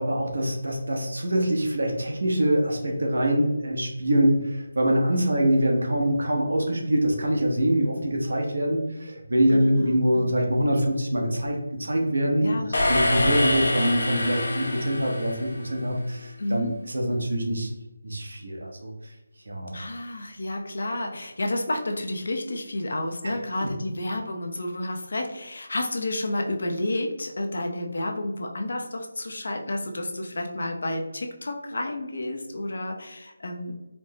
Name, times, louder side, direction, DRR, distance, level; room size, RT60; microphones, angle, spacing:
voice 1, 0.0-12.6 12.9-17.7 18.0-19.1 19.5-19.7 23.2-23.7, right 1 dB, 80° right, 1 dB, 0.9 m, -24 dB
voice 2, 9.5-10.2 12.4-12.7 16.4-16.8 19.7-33.7, left 1 dB, 65° left, 3 dB, 0.6 m, -30 dB
sound 1, 12.7-15.9, left 1 dB, 85° left, 1.0 m, -26 dB
4.3 x 2.1 x 2.7 m, 0.97 s
figure-of-eight pair, 170°, 0 cm